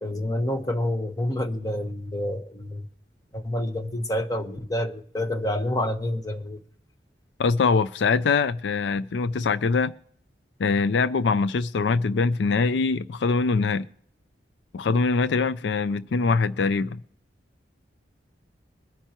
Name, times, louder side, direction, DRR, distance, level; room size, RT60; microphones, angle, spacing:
voice 1, 0.0-2.9 3.3-6.6, left 1 dB, 20° left, 1.2 m, -28 dB
voice 2, 7.4-9.9 10.6-13.9 14.7-17.0, left 4 dB, 75° left, 0.4 m, -23 dB
22.5 x 10.0 x 3.0 m
head